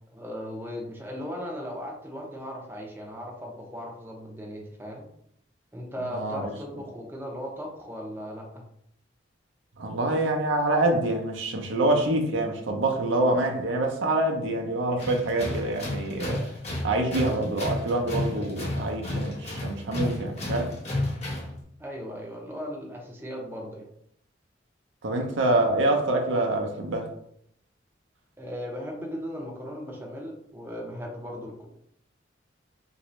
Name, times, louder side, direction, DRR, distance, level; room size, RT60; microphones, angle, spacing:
voice 1, 0.1-5.1 5.7-8.6 21.8-23.9 28.4-31.7, equal, 10° right, 0.5 m, -37 dB
voice 2, 6.1-6.5 9.8-16.4 16.8-20.7 25.0-27.1, right 2 dB, 80° right, 0.6 m, -26 dB
Tools, 15.0-21.6, left 1 dB, 35° left, 1.0 m, -32 dB
3.0 x 2.6 x 3.1 m
head